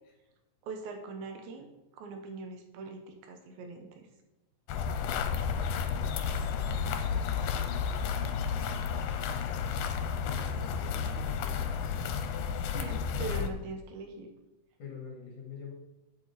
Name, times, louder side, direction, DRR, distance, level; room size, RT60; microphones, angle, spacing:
voice 1, 0.6-1.7 1.9-4.1 12.7-14.3, right 4 dB, 85° right, 4 dB, 3.0 m, -41 dB
sound 1, 4.7-13.5, left 6 dB, 85° left, 2.4 m, -32 dB
voice 2, 7.0-7.4 10.4-11.8 12.7-13.6 14.8-15.7, left 5 dB, 60° left, 0 dB, 3.1 m, -46 dB
8.9 x 7.7 x 4.2 m, 0.97 s
omnidirectional pair, 4.1 m